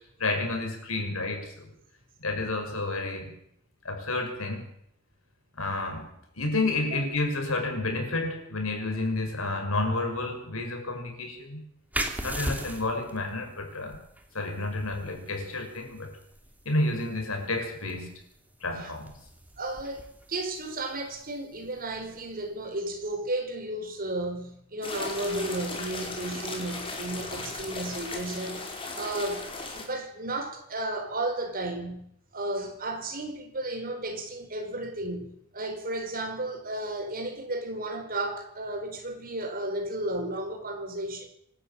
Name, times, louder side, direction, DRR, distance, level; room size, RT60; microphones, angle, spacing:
voice 1, 0.2-1.7 2.2-3.4 3.8-4.7 5.6-11.6 12.2-14.0 14.3-16.1 16.6-18.1 18.6-19.2, left 2 dB, 75° left, 6.2 m, -30 dB
sound 1, 11.9-23.2, right 1 dB, 5° right, 2.7 m, -40 dB
voice 2, 19.6-28.6 28.9-29.5 29.8-41.3, right 1 dB, 45° right, 5.0 m, -33 dB
sound 2, 24.8-29.8, left 3 dB, 25° left, 5.0 m, -37 dB
25.5 x 12.5 x 8.9 m
head